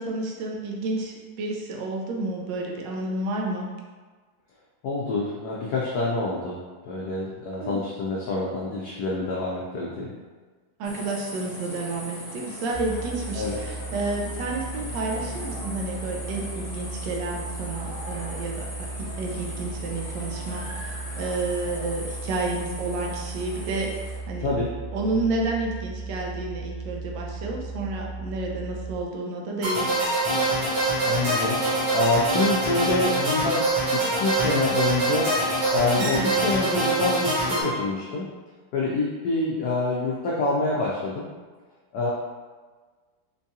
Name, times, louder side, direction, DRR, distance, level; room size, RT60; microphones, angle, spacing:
voice 1, 0.0-3.7 7.6-7.8 10.8-23.9 24.3-24.5 24.9-30.0 36.0-36.3, right 2 dB, 75° right, -1 dB, 1.2 m, -30 dB
voice 2, 4.8-10.1 13.3-13.6 24.4-24.7 31.0-31.6 31.9-33.6 33.9-35.3 35.7-38.3 38.7-41.3 41.9-42.1, left 2 dB, 85° left, -4 dB, 0.8 m, -26 dB
sound 1, 10.8-24.2, left 1 dB, 50° left, 1.5 m, -39 dB
sound 2, 12.7-29.0, right 3 dB, 90° right, 1.8 m, -36 dB
sound 3, 29.6-37.6, right 1 dB, 60° right, 1.7 m, -24 dB
4.5 x 2.3 x 2.7 m, 1.4 s
omnidirectional pair, 2.2 m